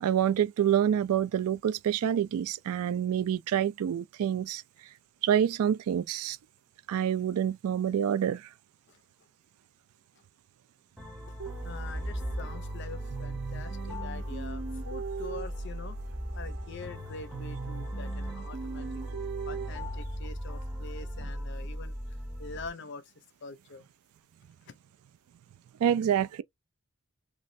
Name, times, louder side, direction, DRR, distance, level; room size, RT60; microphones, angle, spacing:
voice 1, 0.0-4.6 5.2-6.4 6.9-8.5 25.8-26.4, right 9 dB, 80° right, 0.3 m, -27 dB
sound 1, 11.0-22.7, equal, ahead, 0.8 m, -38 dB
sound 2, 11.4-20.0, right 4 dB, 55° right, 0.7 m, -40 dB
voice 2, 11.6-16.0 16.3-19.0 19.5-21.9 22.4-23.0 23.4-23.8 24.7-24.8, left 4 dB, 50° left, 0.5 m, -45 dB
3.1 x 2.4 x 2.5 m
head